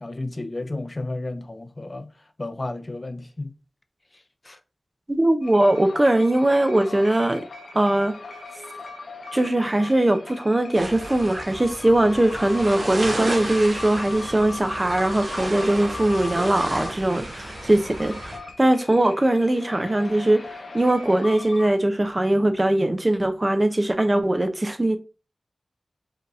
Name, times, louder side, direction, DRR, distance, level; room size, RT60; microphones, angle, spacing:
voice 1, 0.0-2.1 2.4-3.5 4.5-4.6, left 2 dB, 35° left, 0.6 m, -32 dB
voice 2, 5.1-7.5 7.7-8.2 9.3-25.0, right 1 dB, 25° right, 0.6 m, -21 dB
sound 1, 5.4-21.7, left 3 dB, 80° left, 0.9 m, -39 dB
sound 2, 10.7-18.4, right 1 dB, 65° right, 1.1 m, -33 dB
4.9 x 3.4 x 2.6 m
wide cardioid pair, 80°, 0 cm